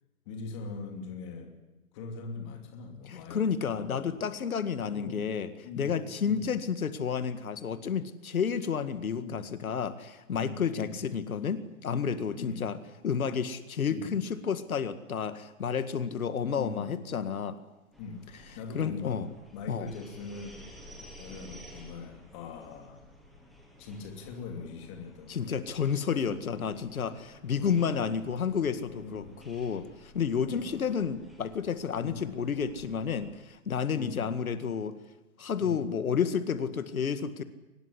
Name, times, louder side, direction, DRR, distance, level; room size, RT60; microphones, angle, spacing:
voice 1, 0.2-1.5 1.9-3.5 3.8-4.2 4.9-5.3 5.6-6.0 6.2-6.5 9.2-9.4 10.3-11.0 12.4-12.7 13.9-14.1 16.5-16.9 18.0-19.2 19.5-20.7 21.2-23.0 23.8-25.5 26.2-26.3 27.6-28.2 29.0-29.4 30.5-30.8 32.0-32.2 33.9-34.4 35.6-35.8, left 4 dB, 20° left, 4 dB, 2.8 m, -41 dB
voice 2, 3.1-5.5 5.8-12.8 13.0-17.6 18.7-19.3 19.7-19.9 25.3-34.9 35.4-37.4, left 7 dB, 75° left, 11 dB, 2.0 m, -31 dB
sound 1, 17.9-33.3, equal, ahead, 0.8 m, -53 dB
23.5 x 20.0 x 9.8 m, 1.1 s
hypercardioid pair, 170°, 43 cm